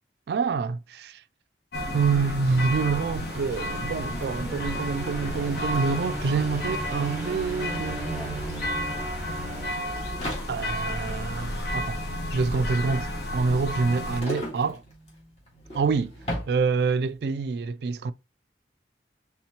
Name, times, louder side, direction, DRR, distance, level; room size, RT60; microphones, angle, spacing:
voice 1, 0.3-1.2 1.9-8.9 10.5-12.0 12.3-14.8 15.7-16.1 16.5-18.1, right 4 dB, 60° right, 0.3 m, -27 dB
sound 1, 1.7-14.2, left 1 dB, 60° left, 1.3 m, -32 dB
sound 2, 2.3-10.6, right 1 dB, 5° right, 1.1 m, -39 dB
sound 3, 6.4-6.5 6.7-17.2, equal, 35° left, 1.8 m, -40 dB
4.3 x 3.8 x 2.9 m
head